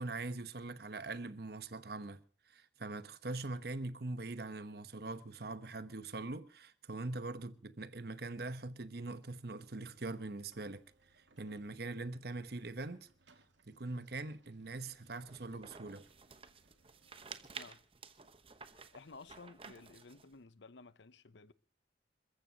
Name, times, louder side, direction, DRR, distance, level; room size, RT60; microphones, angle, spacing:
voice 1, 0.0-2.2 2.5-10.8 11.4-13.1 13.7-16.0, right 2 dB, 55° right, 1.0 m, -42 dB
sound 1, 9.6-17.6, right 2 dB, 80° right, 2.2 m, -71 dB
sound 2, 15.3-20.3, right 5 dB, 30° right, 1.0 m, -52 dB
voice 2, 18.9-21.5, left 4 dB, 75° left, 0.8 m, -54 dB
27.5 x 14.5 x 2.9 m
head